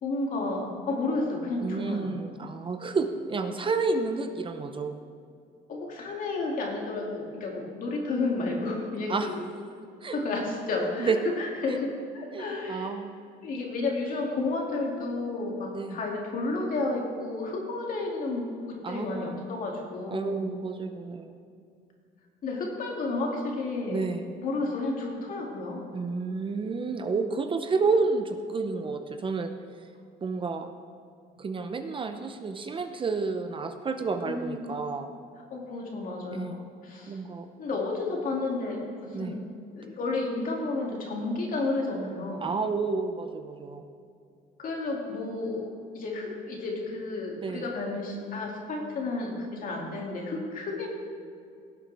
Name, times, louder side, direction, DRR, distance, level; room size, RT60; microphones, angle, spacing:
voice 1, 0.0-2.2 5.7-9.4 10.1-12.9 13.4-20.5 22.4-24.0 24.4-25.8 34.2-34.6 35.5-37.2 37.6-39.4 39.7-42.5 44.6-45.7 45.9-50.9, left 3 dB, 55° left, -1 dB, 2.6 m, -31 dB
voice 2, 1.6-5.0 9.1-9.3 10.0-10.2 11.0-11.2 11.7-11.8 12.3-13.2 15.7-16.0 18.8-19.5 20.1-21.3 23.9-24.2 25.9-29.5 30.2-30.7 31.4-35.1 36.3-36.7 37.1-37.5 39.1-39.4 42.4-43.8 47.4-47.7, right 4 dB, 30° right, 7 dB, 0.7 m, -30 dB
18.0 x 7.5 x 3.5 m, 2.4 s
cardioid pair, 110°, 17 cm